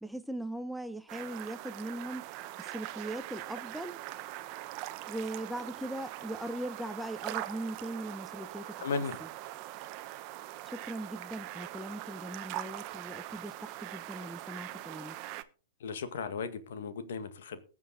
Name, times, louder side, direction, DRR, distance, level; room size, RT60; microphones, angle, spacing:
voice 1, 0.0-2.3 2.6-4.0 5.1-8.9 9.2-9.3 10.7-15.2, right 1 dB, ahead, 0.8 m, -40 dB
sound 1, 1.1-15.4, right 15 dB, 40° right, 0.9 m, -42 dB
voice 2, 8.8-9.2 15.8-17.6, left 5 dB, 65° left, 1.8 m, -36 dB
20.0 x 7.3 x 3.9 m
hypercardioid pair, 110°, 0 cm